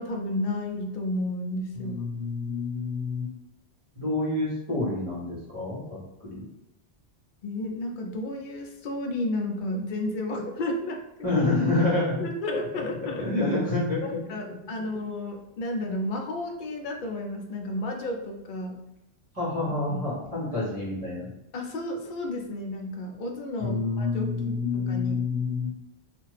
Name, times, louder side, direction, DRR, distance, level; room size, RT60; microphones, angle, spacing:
voice 1, 0.0-1.9 7.4-11.0 12.2-13.3 14.0-18.8 19.9-20.1 21.5-25.2, left 1 dB, 55° left, 2 dB, 0.6 m, -32 dB
voice 2, 1.8-3.3 3.9-6.4 11.2-12.3 13.2-14.0 19.3-21.3 23.6-25.7, left 3 dB, 30° right, -7 dB, 1.4 m, -28 dB
2.8 x 2.5 x 3.2 m, 0.90 s
omnidirectional pair, 1.1 m